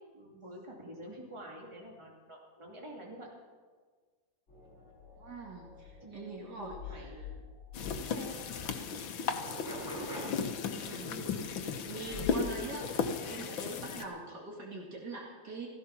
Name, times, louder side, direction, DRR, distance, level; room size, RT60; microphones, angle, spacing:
voice 1, 0.1-3.3 6.0-7.4 7.8-8.5 11.0-11.4, equal, 15° right, -2 dB, 2.6 m, -48 dB
sound 1, 4.5-8.7 9.1-10.3 12.0-12.6 12.9-13.1, left 3 dB, 35° left, 5.7 m, -46 dB
voice 2, 5.2-7.2 10.8-11.3 11.7-15.7, right 3 dB, 55° right, -1 dB, 2.8 m, -43 dB
sound 2, 7.7-14.0, left 6 dB, 75° left, 1.8 m, -35 dB
16.0 x 14.5 x 5.9 m, 1.5 s
omnidirectional pair, 2.2 m